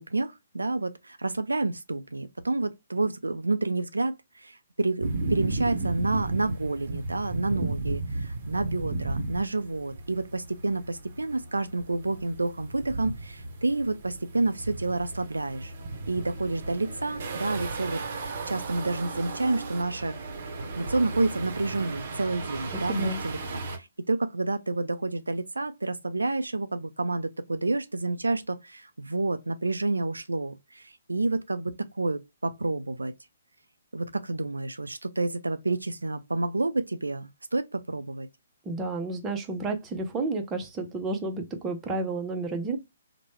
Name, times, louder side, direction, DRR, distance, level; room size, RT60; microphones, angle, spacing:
voice 1, 0.0-15.7 16.1-20.2 20.8-33.1 33.9-38.3, right 2 dB, 85° right, 0.3 m, -29 dB
sound 1, 5.0-23.8, right 3 dB, 50° right, 0.7 m, -35 dB
voice 2, 22.9-23.2 38.6-42.8, right 3 dB, 15° right, 0.7 m, -31 dB
3.0 x 2.1 x 3.0 m
figure-of-eight pair, 130°, 0 cm